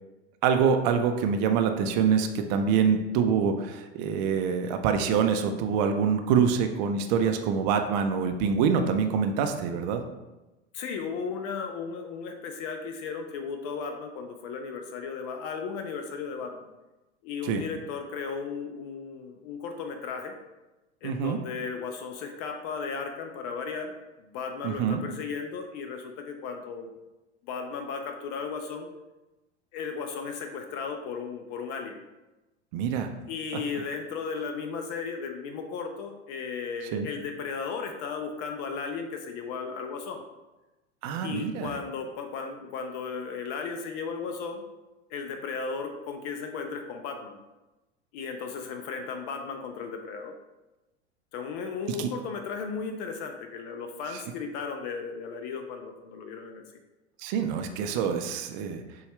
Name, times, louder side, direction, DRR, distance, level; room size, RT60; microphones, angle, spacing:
voice 1, 0.4-10.0 17.4-17.6 21.0-21.4 24.6-25.0 32.7-33.1 36.9-37.1 41.0-41.7 52.0-52.1 57.2-58.8, right 6 dB, 40° right, 6 dB, 0.5 m, -25 dB
voice 2, 10.7-16.7 17.2-20.3 21.0-23.9 24.2-26.9 27.4-28.9 29.7-32.0 33.3-40.2 41.2-44.6 45.1-47.4 48.1-50.3 51.3-56.8, left 5 dB, 40° left, 5 dB, 0.5 m, -35 dB
6.8 x 2.3 x 3.2 m, 1.1 s
figure-of-eight pair, 85°, 35 cm